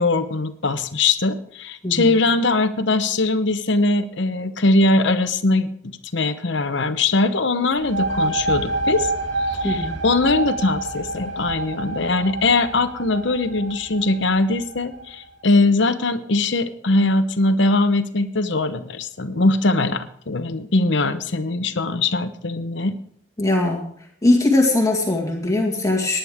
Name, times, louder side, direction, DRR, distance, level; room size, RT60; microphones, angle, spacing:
voice 1, 0.0-9.1 9.5-22.9, left 2 dB, 65° left, 11 dB, 0.9 m, -21 dB
sound 1, 7.7-15.2, right 2 dB, 85° right, 2.2 m, -27 dB
voice 2, 9.6-10.0 23.4-23.9 24.2-26.2, left 2 dB, 20° left, 0 dB, 2.1 m, -20 dB
18.0 x 10.5 x 3.6 m, 0.64 s
head